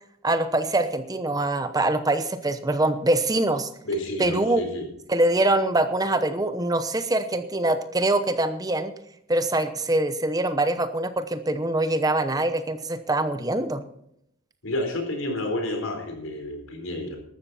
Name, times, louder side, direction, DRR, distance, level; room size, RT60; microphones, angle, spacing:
voice 1, 0.2-3.7 4.2-4.6 5.1-8.9 9.3-13.8, right 2 dB, 20° right, 10 dB, 0.8 m, -24 dB
voice 2, 3.8-4.9 14.6-17.2, left 1 dB, 80° left, 4 dB, 4.3 m, -30 dB
14.5 x 12.5 x 4.2 m, 0.74 s
head